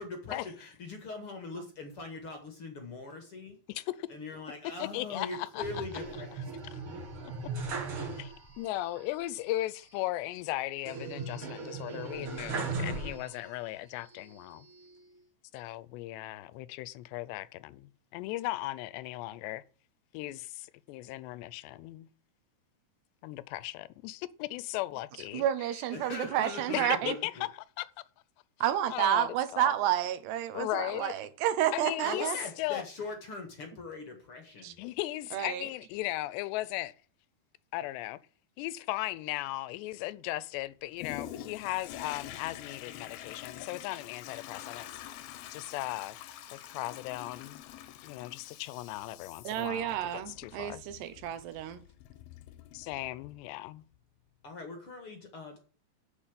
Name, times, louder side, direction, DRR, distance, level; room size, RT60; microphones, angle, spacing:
voice 1, 0.0-3.6 4.1-6.4 25.9-27.5 32.0-34.8 54.4-55.6, left 3 dB, 45° left, 2.0 m, -41 dB
voice 2, 3.7-4.1 4.6-5.8 6.7-6.8 8.2-14.7 15.5-19.6 20.1-22.1 23.2-25.5 26.7-27.5 27.8-27.9 28.9-29.9 30.5-31.1 31.7-32.3 32.6-32.8 34.8-36.9 37.7-38.2 38.6-44.9 45.5-46.2 46.7-47.6 48.0-50.8 52.7-53.8, left 17 dB, 90° left, 2.8 m, -37 dB
sound 1, 5.6-8.7 9.0-9.1 10.9-13.6 14.1-15.0, right 3 dB, 40° right, 2.0 m, -38 dB
voice 3, 25.3-27.1 28.6-32.4 34.6-34.7 35.3-35.7 49.4-51.8, right 11 dB, 80° right, 3.2 m, -30 dB
Toilet flush, 41.0-53.4 53.9-54.0, left 11 dB, 75° left, 2.5 m, -46 dB
8.8 x 7.1 x 7.5 m
omnidirectional pair, 4.8 m